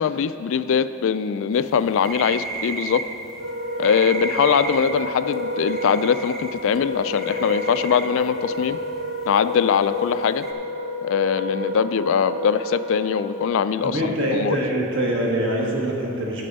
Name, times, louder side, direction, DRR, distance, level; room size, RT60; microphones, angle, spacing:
voice 1, 0.0-3.0 3.8-8.8 9.3-10.4 11.0-14.1 14.4-14.6, left 7 dB, 65° left, 13 dB, 0.3 m, -22 dB
sound 1, 1.6-10.5, right 3 dB, ahead, 0.7 m, -34 dB
Wind instrument woodwind instrument, 3.3-13.4, left 1 dB, 90° right, 1.5 m, -30 dB
voice 2, 13.8-16.5, right 1 dB, 60° right, -1 dB, 1.5 m, -24 dB
10.0 x 6.8 x 5.3 m, 2.8 s
head